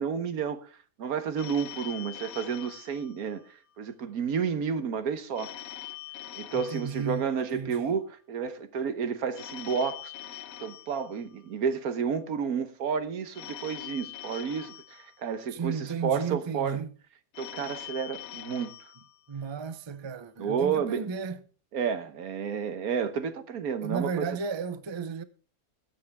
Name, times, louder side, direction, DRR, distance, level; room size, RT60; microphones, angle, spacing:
voice 1, 0.0-5.5 6.3-16.8 17.4-18.9 20.4-21.1 21.7-24.3, right 6 dB, 80° right, 1.5 m, -31 dB
Telephone, 1.4-3.9 5.4-7.8 9.4-11.8 13.3-15.8 17.3-19.8, left 13 dB, 75° left, 1.3 m, -44 dB
voice 2, 6.5-7.3 7.5-8.0 15.5-16.9 19.3-21.4 23.8-25.2, right 6 dB, 30° right, 0.5 m, -34 dB
21.5 x 7.7 x 3.4 m
omnidirectional pair, 1.5 m